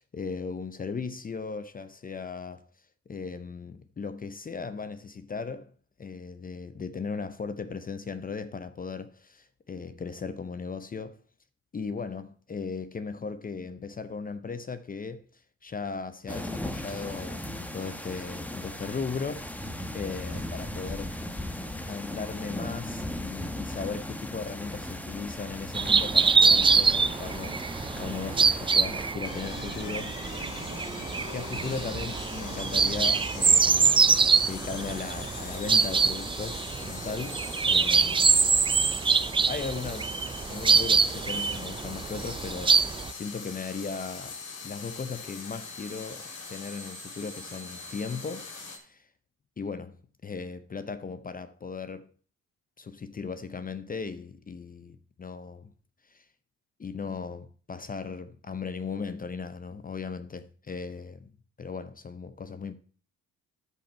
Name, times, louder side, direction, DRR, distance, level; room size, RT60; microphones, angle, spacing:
voice 1, 0.0-2.6 3.1-5.7 6.0-11.2 11.7-21.2 21.9-30.5 31.3-34.1 34.4-38.5 39.5-40.1 40.5-49.1 49.6-50.0 50.2-52.1 52.8-55.7 56.1-56.2 56.8-61.3 61.6-62.7, left 5 dB, 30° left, 0.7 m, -37 dB
sound 1, 16.3-29.1, left 1 dB, 5° left, 1.1 m, -37 dB
sound 2, 25.7-43.1, right 5 dB, 15° right, 0.4 m, -24 dB
sound 3, 29.2-48.8, left 4 dB, 80° left, 3.0 m, -41 dB
12.5 x 5.4 x 4.4 m
cardioid pair, 90°, 30 cm